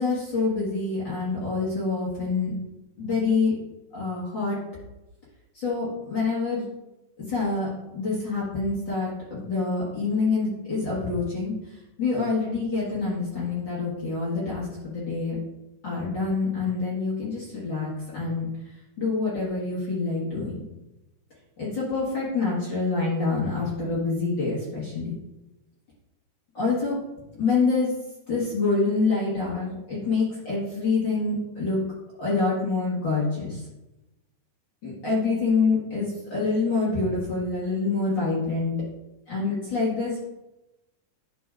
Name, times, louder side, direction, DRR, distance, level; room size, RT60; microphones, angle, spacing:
voice 1, 0.0-2.5 3.0-3.5 3.9-4.6 5.5-6.7 7.3-7.7 7.9-11.5 12.0-15.3 15.8-18.5 19.0-20.6 21.6-25.1 26.5-27.0 27.3-27.9 28.3-31.8 32.2-33.6 34.8-38.7 39.3-40.2, left 4 dB, 50° left, -7 dB, 1.4 m, -26 dB
10.5 x 6.0 x 2.5 m, 0.98 s
omnidirectional pair, 4.3 m